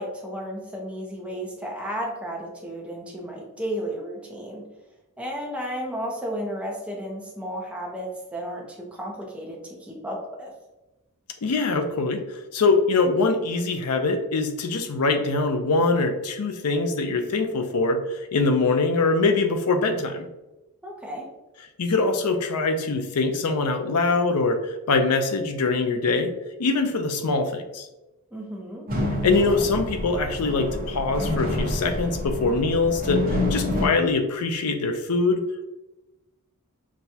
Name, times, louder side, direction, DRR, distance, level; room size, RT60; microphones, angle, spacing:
voice 1, 0.0-4.7 5.2-10.5 20.8-21.2 28.3-28.9, equal, 5° right, -2 dB, 0.7 m, -33 dB
voice 2, 11.4-20.3 21.8-26.3 26.6-27.9 29.2-35.4, left 3 dB, 90° left, 7 dB, 0.5 m, -23 dB
sound 1, 28.9-33.9, left 1 dB, 40° right, 0.8 m, -28 dB
6.0 x 2.3 x 2.7 m, 1.0 s
head